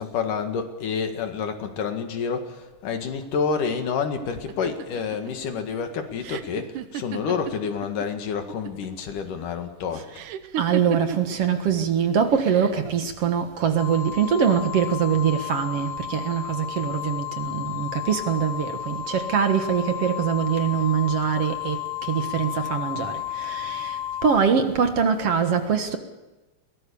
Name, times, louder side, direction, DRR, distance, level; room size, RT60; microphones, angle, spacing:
voice 1, 0.0-10.2, left 6 dB, 90° left, 3.5 m, -28 dB
sound 1, 4.5-8.1 8.4-9.0 10.1-11.4 12.3-12.9, right 10 dB, 85° right, 2.5 m, -34 dB
voice 2, 10.6-24.0 24.2-26.0, right 7 dB, 55° right, 2.3 m, -23 dB
sound 2, 13.8-24.4, left 12 dB, 60° left, 1.9 m, -33 dB
22.5 x 18.0 x 7.0 m
omnidirectional pair, 3.6 m